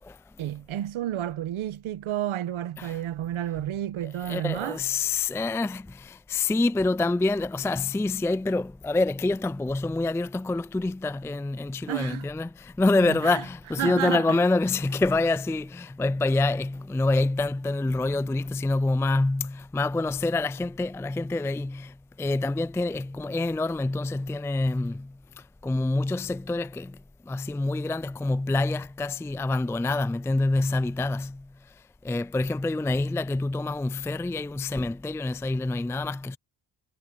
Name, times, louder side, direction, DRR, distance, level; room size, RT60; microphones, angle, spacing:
voice 1, 0.4-4.8 11.9-12.3 13.1-13.4 13.8-14.3, right 12 dB, 85° right, 1.4 m, -31 dB
voice 2, 4.0-27.0 27.3-36.4, left 2 dB, 5° left, 0.4 m, -27 dB
supercardioid pair, 45°, 47 cm